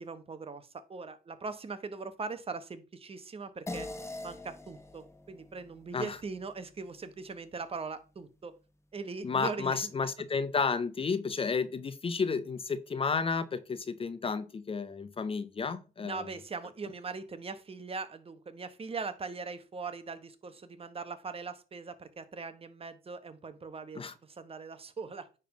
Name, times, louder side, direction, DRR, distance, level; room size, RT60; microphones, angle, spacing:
voice 1, 0.0-3.9 4.2-8.6 8.9-9.9 16.0-25.3, right 4 dB, 35° right, 1.0 m, -41 dB
sound 1, 3.7-8.4, left 2 dB, 15° left, 1.0 m, -45 dB
voice 2, 9.2-16.3 24.0-24.1, left 5 dB, 35° left, 0.6 m, -32 dB
9.3 x 3.7 x 5.1 m
cardioid pair, 95°, 17 cm